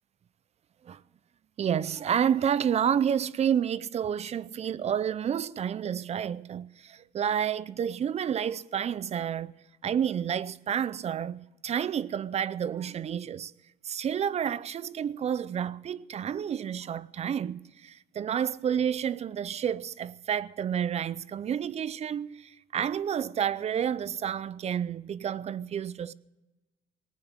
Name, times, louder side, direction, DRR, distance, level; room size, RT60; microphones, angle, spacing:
voice 1, 1.6-9.5 9.8-13.5 13.8-26.1, right 8 dB, 40° right, 0.6 m, -30 dB
19.0 x 9.5 x 7.3 m
cardioid pair, 110°, 17 cm